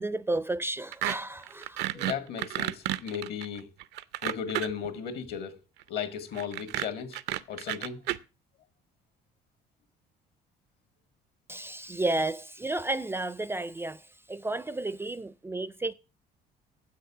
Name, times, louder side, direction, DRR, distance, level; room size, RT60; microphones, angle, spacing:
voice 1, 0.0-2.1 11.5-14.0 14.3-15.9, right 2 dB, 15° right, 0.4 m, -32 dB
sound 1, 0.9-1.2 1.4-4.9 6.3-8.2, right 14 dB, 85° right, 0.6 m, -31 dB
voice 2, 1.9-3.7 4.2-5.6 5.9-7.2 7.5-8.0, left 7 dB, 70° left, 1.8 m, -35 dB
7.7 x 6.6 x 7.0 m
cardioid pair, 110°, 17 cm